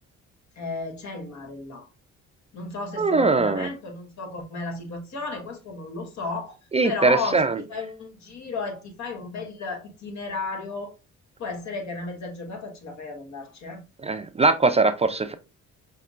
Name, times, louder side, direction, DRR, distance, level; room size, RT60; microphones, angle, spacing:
voice 1, 0.6-1.9 2.5-6.5 6.8-7.4 7.7-10.9 11.4-13.8, left 3 dB, 65° left, 1.4 m, -33 dB
voice 2, 3.0-3.7 6.7-7.6 14.0-15.3, right 3 dB, 20° right, 0.3 m, -21 dB
5.6 x 2.9 x 2.4 m
cardioid pair, 90°, 30 cm